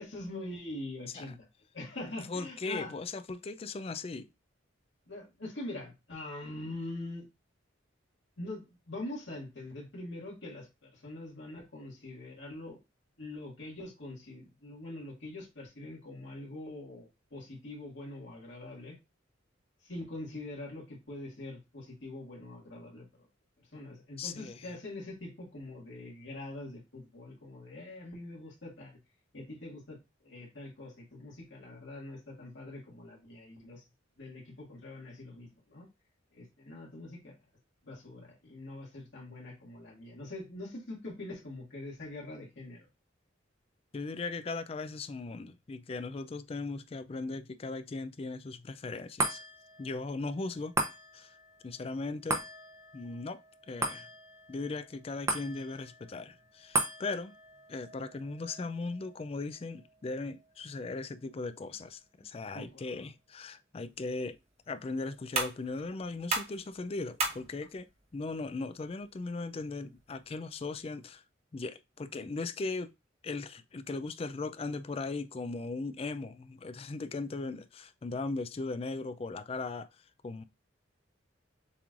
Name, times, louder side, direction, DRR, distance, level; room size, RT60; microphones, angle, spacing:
voice 1, 0.0-1.5 1.7-2.9 5.1-7.3 8.4-12.8 13.2-19.0 19.8-23.3 23.7-29.0 29.3-33.8 34.2-35.9 36.3-37.4 37.8-42.9 62.5-63.1, left 2 dB, 65° left, 2.0 m, -44 dB
voice 2, 2.3-4.3 24.2-24.7 43.9-49.4 49.8-50.7 51.1-51.3 51.6-52.4 52.9-53.4 53.7-54.1 54.5-57.3 57.7-64.4 64.7-67.9 68.1-71.2 71.5-72.9 73.2-79.9 80.2-80.4, left 3 dB, 30° left, 0.3 m, -38 dB
sound 1, 49.2-61.8 62.2-62.3, right 2 dB, 15° right, 0.7 m, -39 dB
sound 2, 63.8-70.8, right 3 dB, 30° right, 1.1 m, -40 dB
6.9 x 3.1 x 2.5 m
head